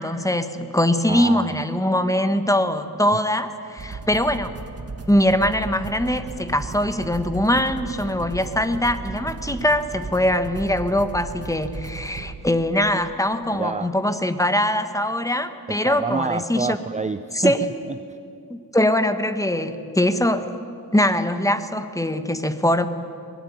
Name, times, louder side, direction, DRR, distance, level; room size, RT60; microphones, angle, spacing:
voice 1, 0.0-4.5 5.1-16.8 17.3-17.6 18.5-20.5 20.9-22.9, left 1 dB, 10° left, 10 dB, 1.3 m, -22 dB
voice 2, 1.1-1.6 13.5-13.9 15.7-18.2, right 4 dB, 20° right, 11 dB, 0.6 m, -28 dB
sound 1, 3.8-13.4, right 4 dB, 40° right, 1.5 m, -36 dB
22.0 x 19.0 x 9.4 m, 2.6 s
cardioid pair, 90°, 39 cm